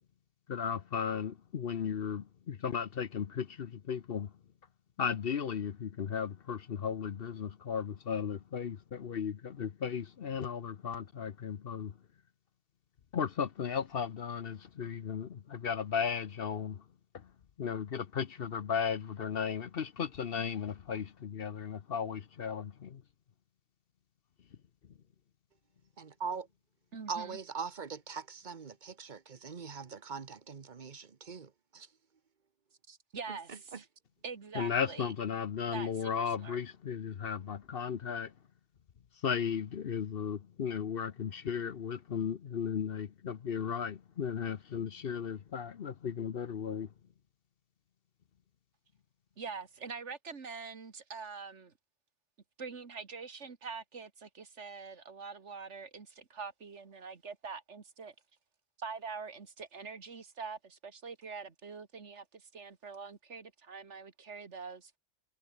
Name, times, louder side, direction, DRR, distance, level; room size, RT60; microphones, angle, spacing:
voice 1, 0.5-4.3 5.0-11.9 13.1-16.8 17.1-17.3 17.6-23.0 34.5-38.3 39.2-46.9, left 7 dB, 55° left, 1.0 m, -35 dB
voice 2, 26.0-26.5 27.1-31.9 33.5-33.8, right 5 dB, 40° right, 1.2 m, -42 dB
voice 3, 26.9-27.4 32.9-33.9 34.2-35.1 35.7-36.6 49.4-51.7 52.6-58.1 58.8-65.0, right 5 dB, 70° right, 2.1 m, -44 dB
omnidirectional pair, 1.2 m